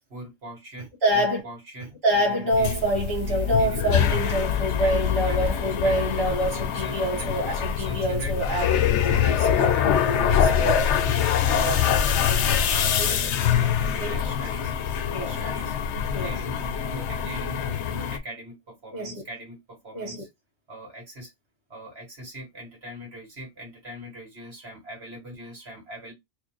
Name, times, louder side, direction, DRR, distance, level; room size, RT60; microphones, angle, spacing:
voice 1, 0.1-0.9 1.1-6.3 6.8-7.3 7.8-14.7 15.1-15.7 16.2-20.3 20.7-21.3 21.7-26.1, equal, 50° right, 1.7 m, -41 dB
voice 2, 1.0-1.4 2.0-9.2 9.6-10.9 11.6-11.9 12.9-13.2 14.0-14.2 15.1-15.4 16.1-16.4 18.9-19.2 19.9-20.3, right 1 dB, 20° right, 1.3 m, -26 dB
sound 1, 2.5-18.2, left 8 dB, 65° left, 0.8 m, -24 dB
4.4 x 2.2 x 2.9 m
omnidirectional pair, 1.4 m